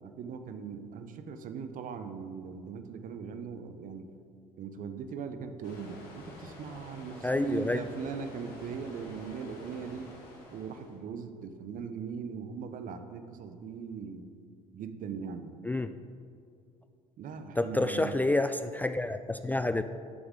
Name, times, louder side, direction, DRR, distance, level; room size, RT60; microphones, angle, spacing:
voice 1, 0.0-4.1 4.6-10.1 10.5-14.3 14.7-15.5 17.2-18.2, right 6 dB, 50° right, 9 dB, 0.8 m, -40 dB
sound 1, 5.6-11.0, left 1 dB, 70° left, 2.3 m, -49 dB
voice 2, 7.2-7.8 15.6-15.9 17.6-19.8, left 2 dB, 10° left, 10 dB, 0.3 m, -28 dB
9.7 x 7.1 x 3.7 m, 2.2 s
hypercardioid pair, 65°, 18 cm